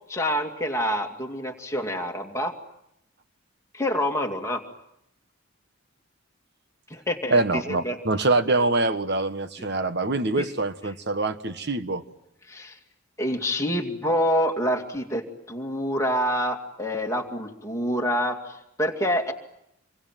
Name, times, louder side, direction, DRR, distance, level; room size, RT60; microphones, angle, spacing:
voice 1, 0.1-2.5 3.7-4.6 6.9-8.0 10.4-10.5 12.5-12.8 13.2-19.3, equal, 15° left, 2.5 m, -27 dB
voice 2, 7.3-12.0, right 2 dB, 50° right, 1.4 m, -24 dB
27.5 x 23.5 x 9.2 m
head